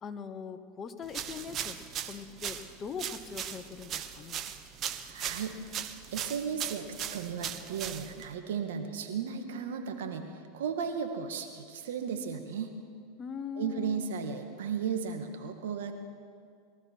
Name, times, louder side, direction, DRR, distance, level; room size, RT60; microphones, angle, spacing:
voice 1, 0.0-1.8 2.1-4.4 13.2-14.1, left 6 dB, 30° left, 10 dB, 1.0 m, -41 dB
sound 1, 1.1-8.3, right 9 dB, 40° right, 0.9 m, -38 dB
voice 2, 5.1-5.6 5.8-10.3 10.5-12.7 13.6-15.9, right 6 dB, 80° right, 6 dB, 1.8 m, -35 dB
22.5 x 14.0 x 4.7 m, 2.2 s
hypercardioid pair, 110°, 0 cm